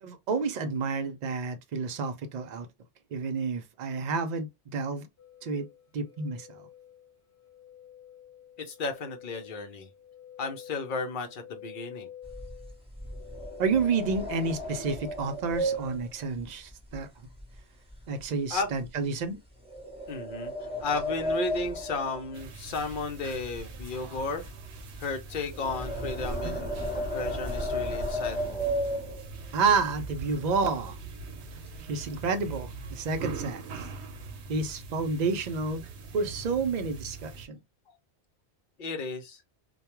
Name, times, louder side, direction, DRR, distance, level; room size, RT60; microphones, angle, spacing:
voice 1, 0.0-2.7 3.1-5.1 5.4-5.7 5.9-6.6 13.6-17.1 18.1-19.4 29.5-31.0 31.9-33.6 34.5-35.9 36.1-37.6, right 4 dB, 55° right, 0.5 m, -30 dB
sound 1, 5.2-13.7, left 10 dB, 80° left, 1.0 m, -49 dB
voice 2, 8.6-9.9 10.4-12.1 18.5-18.7 20.1-20.5 20.8-24.5 25.0-28.7 38.8-39.4, left 3 dB, 55° left, 0.7 m, -34 dB
sound 2, 12.2-17.6 17.9-18.2 18.7-18.9 19.7-23.0 23.3-29.5 30.1-30.2 30.5-30.8 31.1-31.8, equal, 5° right, 0.7 m, -34 dB
sound 3, 22.3-37.5, right 4 dB, 80° right, 0.9 m, -42 dB
2.3 x 2.2 x 2.9 m
omnidirectional pair, 1.2 m